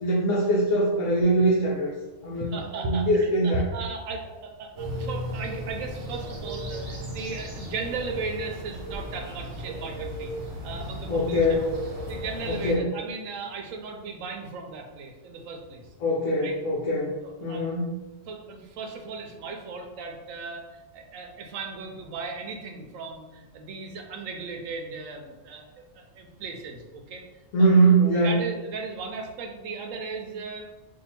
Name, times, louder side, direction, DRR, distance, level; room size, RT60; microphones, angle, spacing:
voice 1, 0.0-1.9 2.2-2.5 2.8-3.6 11.1-11.6 12.5-12.8 16.0-17.1 17.4-17.9 27.5-28.3, right 1 dB, 75° left, -5 dB, 1.0 m, -22 dB
voice 2, 2.3-10.3 10.6-11.6 12.1-15.9 16.4-16.5 17.2-17.7 18.3-25.7 25.9-27.2 27.6-27.7 28.2-30.7, right 3 dB, 80° right, 3 dB, 1.0 m, -36 dB
sound 1, 4.8-12.8, right 1 dB, 60° right, 1.1 m, -35 dB
2.7 x 2.7 x 4.3 m, 1.1 s
omnidirectional pair, 1.4 m